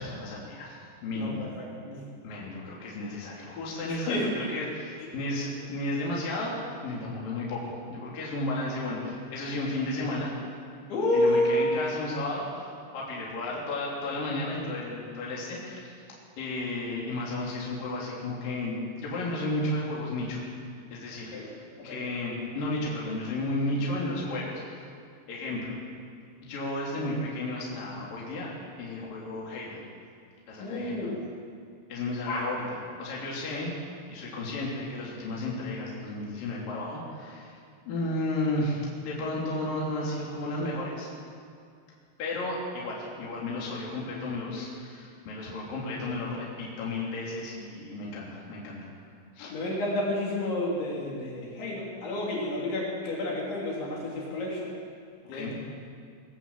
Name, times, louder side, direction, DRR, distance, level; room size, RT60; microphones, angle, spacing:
voice 1, 0.0-1.4 2.2-6.6 6.8-10.4 11.1-15.9 16.4-20.4 20.9-24.6 25.3-25.8 26.4-28.5 28.8-29.8 30.5-31.1 31.9-33.7 34.1-37.6 37.9-41.1 42.2-48.8 49.4-49.5 55.2-55.5, left 2 dB, 50° left, -4 dB, 4.6 m, -33 dB
voice 2, 1.1-2.0 3.9-4.5 10.9-11.8 21.3-21.5 21.8-22.0 30.6-31.2 32.3-32.5 49.5-54.8 55.3-55.5, left 1 dB, 65° left, -4 dB, 5.6 m, -30 dB
21.5 x 16.0 x 7.5 m, 2.3 s
omnidirectional pair, 5.7 m